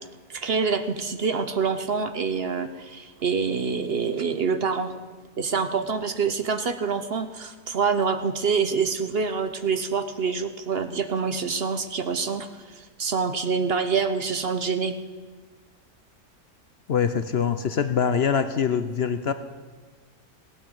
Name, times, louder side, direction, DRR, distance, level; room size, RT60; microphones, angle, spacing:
voice 1, 0.3-4.9 5.4-15.0, right 5 dB, 50° right, 9 dB, 0.9 m, -26 dB
voice 2, 16.9-19.3, left 7 dB, 55° left, 10 dB, 0.7 m, -24 dB
17.0 x 9.2 x 8.8 m, 1.4 s
omnidirectional pair, 1.6 m